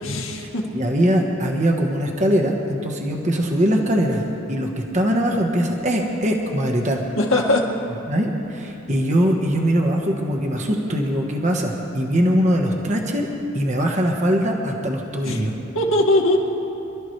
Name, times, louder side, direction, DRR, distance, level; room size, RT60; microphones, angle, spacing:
voice 1, 0.0-0.6 7.2-7.6 15.2-15.5 15.7-16.4, left 1 dB, 75° left, 0 dB, 2.1 m, -20 dB
voice 2, 0.7-7.0 8.1-13.3 13.5-15.5, equal, 35° right, 1 dB, 1.3 m, -21 dB
27.0 x 13.0 x 3.3 m, 2.9 s
head